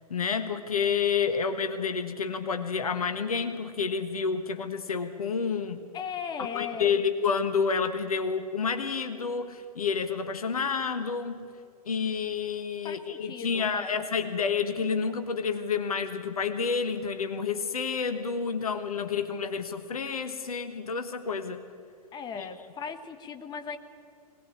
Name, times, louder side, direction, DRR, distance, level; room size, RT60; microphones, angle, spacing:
voice 1, 0.1-5.8 6.5-11.4 11.9-21.6 22.4-22.5, left 5 dB, 65° left, 9 dB, 1.4 m, -29 dB
voice 2, 5.9-7.0 12.8-14.3 22.1-23.8, left 6 dB, 20° left, 7 dB, 1.4 m, -38 dB
22.5 x 19.0 x 8.8 m, 2.4 s
figure-of-eight pair, 105°, 20 cm